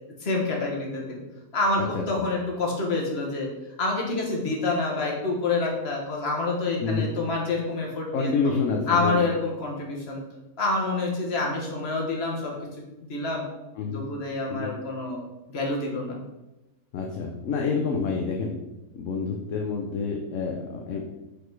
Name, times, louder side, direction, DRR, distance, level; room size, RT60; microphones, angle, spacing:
voice 1, 0.2-1.2 1.5-3.5 3.8-8.3 8.9-10.2 10.6-12.5 13.1-13.4 13.9-15.2 15.5-16.2, left 3 dB, 45° left, -1 dB, 1.5 m, -27 dB
voice 2, 8.1-9.2 13.8-14.0 14.5-14.7 16.9-18.5 18.9-21.1, left 5 dB, 65° left, 1 dB, 0.9 m, -28 dB
5.1 x 4.1 x 4.6 m, 1.0 s
omnidirectional pair, 1.6 m